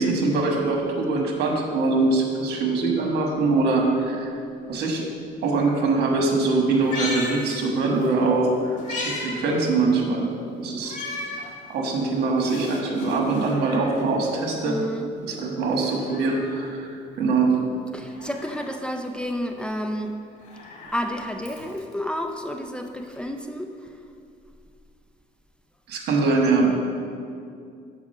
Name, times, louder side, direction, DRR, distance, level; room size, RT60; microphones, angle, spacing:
voice 1, 0.0-4.3 4.7-5.0 5.4-10.3 10.6-11.0 11.7-14.8 15.2-17.6 25.9-26.7, right 3 dB, 75° right, 1 dB, 1.5 m, -23 dB
Meow, 6.7-8.1 8.4-9.3 9.6-9.7 10.8-11.5 12.0-12.1 13.1-14.1 15.6-16.6 18.0-18.8 20.3-21.9 23.2-23.3, left 2 dB, 50° left, 2.2 m, -36 dB
sound 1, 11.0-11.2 12.4-14.0 15.2-15.3 15.6-15.7, left 6 dB, 85° left, 0.9 m, -43 dB
voice 2, 14.7-15.1 17.9-20.1 20.9-23.7, equal, 5° left, 4 dB, 0.5 m, -30 dB
7.2 x 4.9 x 6.4 m, 2.4 s
cardioid pair, 110°, 17 cm